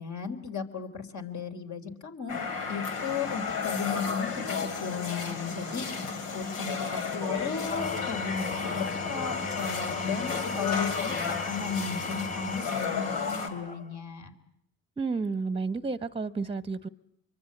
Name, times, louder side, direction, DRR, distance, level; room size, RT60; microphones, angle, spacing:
voice 1, 0.0-2.3 2.7-6.1 6.3-11.1 11.4-14.3, left 6 dB, 50° left, 6 dB, 3.5 m, -35 dB
sound 1, 2.3-13.5, left 5 dB, 90° left, 3.0 m, -33 dB
Engine / Tools, 7.6-14.0, left 3 dB, 20° left, 1.2 m, -38 dB
voice 2, 15.0-16.9, right 4 dB, 15° right, 15 dB, 1.0 m, -31 dB
25.0 x 23.5 x 8.6 m, 0.71 s
supercardioid pair, 65°, 35 cm